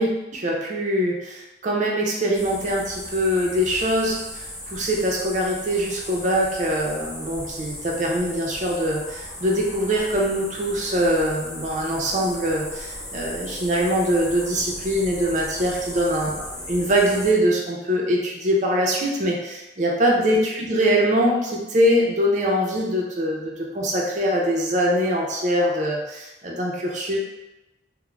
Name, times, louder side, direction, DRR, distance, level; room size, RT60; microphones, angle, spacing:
voice 1, 0.0-27.2, equal, 40° right, -1 dB, 0.5 m, -23 dB
sound 1, 2.3-17.3, left 1 dB, 20° left, 0.7 m, -37 dB
2.4 x 2.0 x 3.1 m, 1.0 s
head